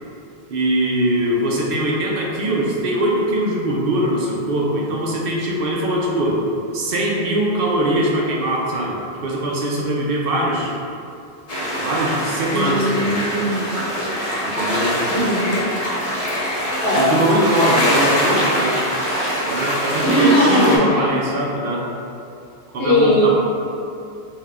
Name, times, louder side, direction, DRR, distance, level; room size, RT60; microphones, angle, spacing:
voice 1, 0.5-6.4 6.7-10.8 11.8-13.3 14.4-15.0 16.9-18.8 19.5-21.9 22.7-23.3, right 1 dB, 65° right, -3 dB, 0.7 m, -21 dB
sound 1, 11.5-20.8, equal, 40° left, 0.8 m, -23 dB
voice 2, 12.5-13.7 15.1-15.6 16.8-17.1 17.7-17.9 20.0-21.2 22.8-23.3, equal, 70° left, -5 dB, 1.0 m, -19 dB
3.5 x 2.7 x 3.2 m, 2.6 s
omnidirectional pair, 1.1 m